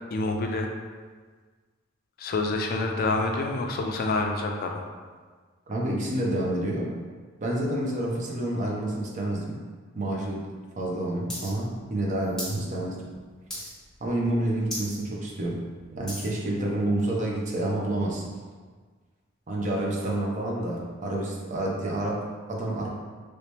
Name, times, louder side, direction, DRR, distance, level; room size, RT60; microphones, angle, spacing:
voice 1, 0.1-0.7 2.2-4.9, left 2 dB, 50° left, 2 dB, 0.4 m, -27 dB
voice 2, 5.7-6.9 7.4-9.6 9.9-10.5 10.8-12.9 14.0-15.6 15.9-18.2 19.5-22.9, right 1 dB, 40° right, -2 dB, 0.6 m, -28 dB
sound 1, 11.3-11.5 11.8-12.6 13.0-13.2 13.5-13.9 14.3-14.4 14.6-15.0 15.4-16.3 17.0-17.1, equal, 5° left, 1.2 m, -36 dB
3.1 x 2.9 x 3.3 m, 1.5 s
head